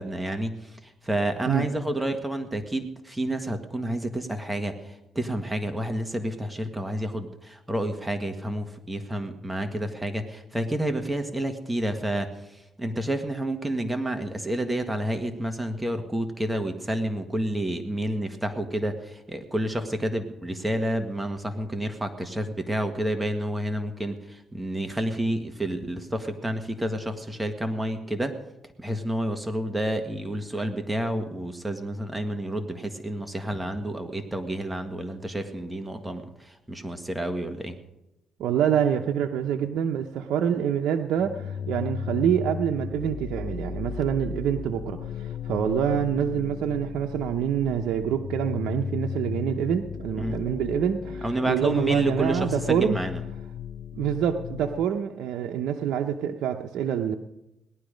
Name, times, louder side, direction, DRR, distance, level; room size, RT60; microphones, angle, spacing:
voice 1, 0.0-28.3 28.8-37.8 50.2-50.4 51.2-53.2, right 1 dB, 10° right, 6 dB, 1.6 m, -29 dB
voice 2, 38.4-53.0 53.9-57.2, right 9 dB, 80° right, 3 dB, 0.8 m, -26 dB
sound 1, 41.2-54.8, left 7 dB, 65° left, 0.8 m, -35 dB
18.0 x 11.5 x 5.2 m, 0.93 s
cardioid pair, 90°, 0 cm